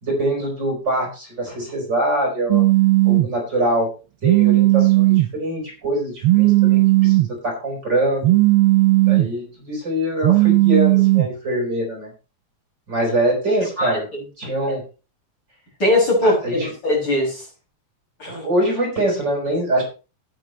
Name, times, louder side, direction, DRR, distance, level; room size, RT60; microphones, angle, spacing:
voice 1, 0.0-2.6 3.0-3.9 4.2-8.3 9.1-12.1 12.9-14.1 14.4-14.8 16.2-16.7 18.3-19.8, right 1 dB, 35° right, 1 dB, 4.7 m, -23 dB
Telephone, 2.5-3.3 4.2-5.3 6.2-7.3 8.2-9.3 10.2-11.3, right 19 dB, 80° right, 1.3 m, -15 dB
voice 2, 15.8-17.4 18.2-18.5, left 1 dB, 35° left, -2 dB, 6.8 m, -20 dB
16.5 x 9.0 x 3.1 m, 0.33 s
omnidirectional pair, 3.4 m